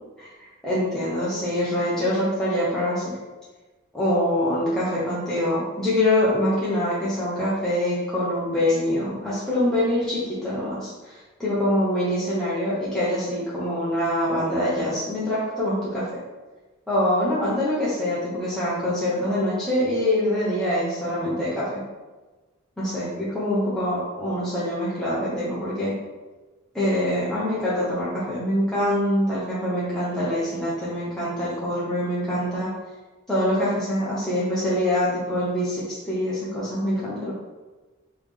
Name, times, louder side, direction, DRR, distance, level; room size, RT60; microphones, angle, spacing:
voice 1, 0.2-3.2 3.9-16.2 16.9-21.8 22.8-26.0 26.7-32.8 33.3-37.3, left 1 dB, 5° left, -10 dB, 0.7 m, -24 dB
3.5 x 3.2 x 3.4 m, 1.2 s
head